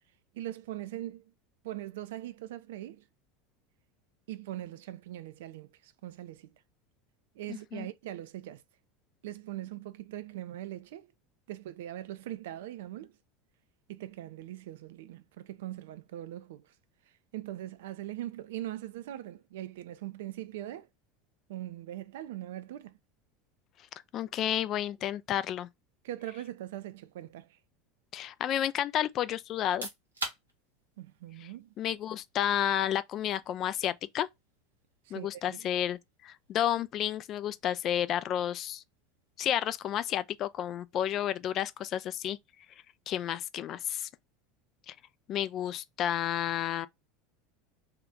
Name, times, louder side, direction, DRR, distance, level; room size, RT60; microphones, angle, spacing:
voice 1, 0.3-1.3 1.6-3.1 4.3-6.6 7.3-8.6 9.2-11.1 11.5-13.2 13.9-16.7 17.1-20.9 21.5-23.0 26.0-27.6 31.0-31.7 35.0-35.7, right 13 dB, 65° right, 0.3 m, -41 dB
voice 2, 7.5-7.9 24.1-25.7 28.1-29.9 31.8-34.3 35.1-38.8 39.4-42.4 43.1-44.1 44.9-45.0 45.3-46.9, left 11 dB, 45° left, 0.3 m, -31 dB
sound 1, 29.6-42.2, right 2 dB, 85° right, 0.9 m, -49 dB
2.8 x 2.3 x 3.4 m
figure-of-eight pair, 75°, 0 cm